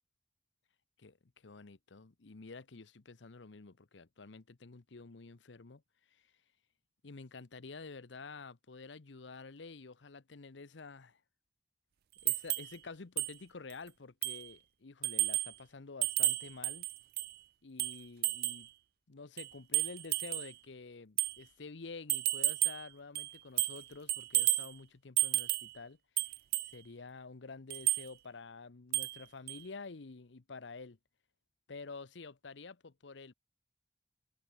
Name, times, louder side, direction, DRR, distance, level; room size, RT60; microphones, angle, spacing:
voice 1, 1.0-5.8 6.1-6.2 7.0-11.2 12.2-16.9 17.6-18.7 19.1-26.0 26.7-31.0 31.7-33.3, left 4 dB, 80° left, 0.9 m, -49 dB
sound 1, 12.3-12.7 13.2-13.3 13.7-13.8 14.2-14.5 15.0-15.5 16.0-17.3 17.8-18.7 19.4-20.5 21.2-21.4 22.1-22.9 23.1-23.8 24.1-24.7 25.2-25.7 26.2-26.7 27.7-28.1 28.9-29.2 29.5-29.6, right 17 dB, 60° right, 0.4 m, -32 dB
head